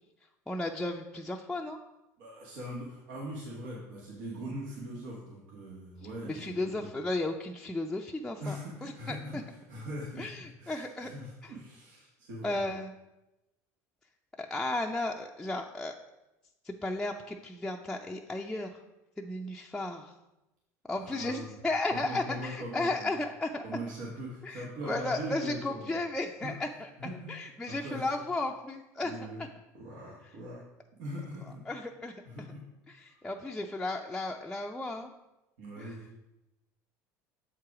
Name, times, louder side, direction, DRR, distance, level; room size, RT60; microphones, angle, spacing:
voice 1, 0.5-1.8 6.2-9.4 10.2-11.1 11.4-11.5 12.4-12.9 14.4-15.9 16.6-18.7 19.2-20.1 20.9-23.6 24.4-26.9 27.3-29.1 31.7-32.1 32.9-35.1 35.8-36.0, left 2 dB, 5° left, 0 dB, 0.5 m, -34 dB
voice 2, 2.2-6.9 8.4-9.4 9.7-12.6 20.9-21.6 21.9-23.1 23.6-26.0 26.4-26.5 27.0-27.3 27.7-28.1 29.0-29.4 29.7-30.6 31.0-31.6 32.2-32.6 32.9-33.2 35.6-36.1, equal, 75° right, -4 dB, 1.6 m, -41 dB
7.5 x 4.7 x 4.8 m, 0.97 s
supercardioid pair, 105°, 8 cm